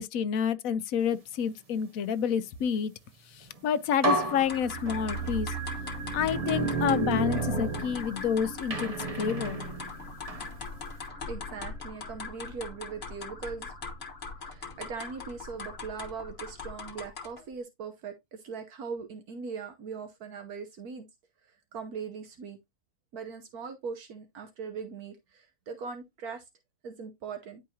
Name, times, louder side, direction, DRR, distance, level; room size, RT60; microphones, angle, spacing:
voice 1, 0.0-2.9 3.3-5.5 6.1-9.6, left 7 dB, 65° left, 1.1 m, -29 dB
sound 1, 3.5-3.6 4.0-5.3 6.0-8.3 8.7-10.5, right 2 dB, 25° right, 0.9 m, -31 dB
sound 2, 4.3-17.5, left 4 dB, 45° left, 1.5 m, -41 dB
sound 3, 4.5-14.7 15.0-15.1, right 6 dB, 45° right, 1.8 m, -42 dB
voice 2, 11.3-13.7 14.4-21.0 21.7-22.6 23.1-26.4 26.8-27.6, right 5 dB, 75° right, 1.4 m, -40 dB
10.0 x 4.7 x 2.8 m
omnidirectional pair, 1.6 m